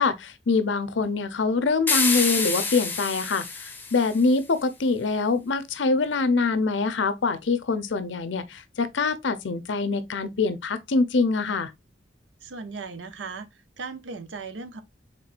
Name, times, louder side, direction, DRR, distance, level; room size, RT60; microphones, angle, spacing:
voice 1, 0.0-11.7, left 4 dB, 85° left, 0.6 m, -24 dB
sound 1, 1.9-4.3, left 4 dB, 10° left, 0.6 m, -27 dB
voice 2, 12.4-13.5 13.8-14.8, right 4 dB, 85° right, 0.6 m, -37 dB
4.5 x 3.6 x 2.4 m
head